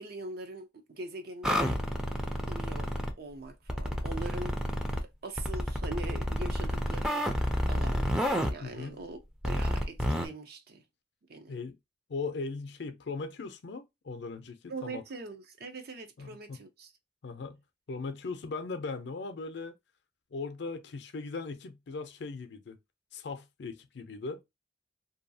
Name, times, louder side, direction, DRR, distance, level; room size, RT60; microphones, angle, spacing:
voice 1, 0.0-1.8 2.5-4.6 5.2-7.3 7.7-8.1 8.5-10.8 11.3-11.5 14.7-16.9, right 2 dB, 60° right, 0.6 m, -42 dB
sound 1, 1.4-3.1 3.7-5.0 5.4-8.5 9.4-10.3, equal, 5° right, 0.4 m, -30 dB
voice 2, 8.6-9.0 11.4-11.8 12.1-15.0 16.2-16.6 17.2-17.6 17.9-19.7 20.3-22.8 23.1-24.4, left 4 dB, 65° left, 0.5 m, -39 dB
2.7 x 2.3 x 2.6 m
head